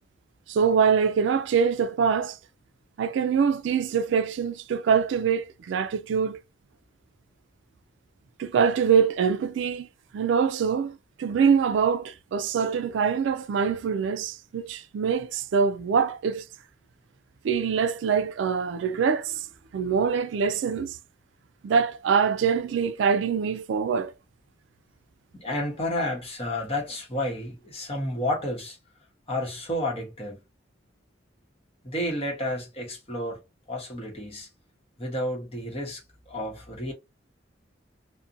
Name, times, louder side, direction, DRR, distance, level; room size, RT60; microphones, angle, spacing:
voice 1, 0.5-2.4 3.0-6.4 8.4-9.9 10.1-16.4 17.4-19.5 19.7-21.0 21.6-24.1, right 6 dB, 75° right, 0.3 m, -24 dB
voice 2, 25.3-28.8 29.3-30.4 31.8-33.4 33.7-34.5 35.0-36.9, left 1 dB, 30° left, 1.0 m, -31 dB
2.6 x 2.1 x 2.5 m
head